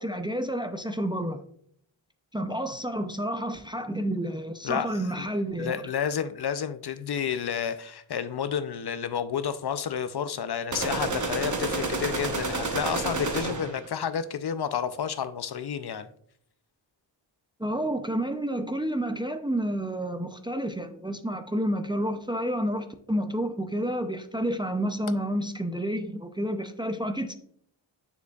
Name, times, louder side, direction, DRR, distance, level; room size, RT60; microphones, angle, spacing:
voice 1, 0.0-1.4 2.3-5.8 17.6-27.3, right 1 dB, 10° right, 0.4 m, -30 dB
voice 2, 4.6-5.3 5.6-16.1, left 8 dB, 55° left, 0.5 m, -30 dB
sound 1, 10.7-13.9, right 3 dB, 40° right, 0.9 m, -30 dB
6.9 x 6.8 x 2.3 m
wide cardioid pair, 90°, 46 cm